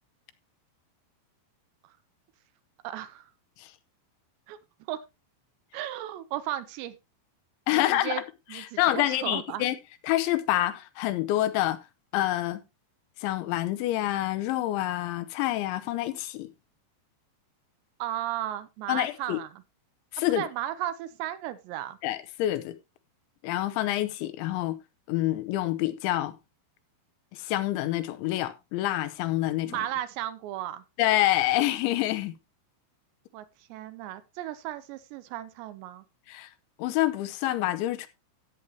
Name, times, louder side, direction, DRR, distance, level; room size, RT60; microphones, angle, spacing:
voice 1, 2.8-3.3 4.5-4.6 4.9-5.0 5.7-7.0 7.7-8.2 8.5-9.6 18.0-19.6 20.4-22.0 29.7-30.8 33.3-36.0, right 13 dB, 80° right, 2.7 m, -35 dB
voice 2, 7.7-8.2 8.5-9.8 10.0-11.8 12.1-12.6 13.2-16.5 18.9-19.4 20.1-20.4 22.0-22.8 23.4-24.8 25.1-26.3 27.3-29.8 31.0-32.3 36.3-36.5 36.8-38.1, left 15 dB, 80° left, 3.2 m, -27 dB
14.0 x 8.6 x 2.9 m
omnidirectional pair, 5.3 m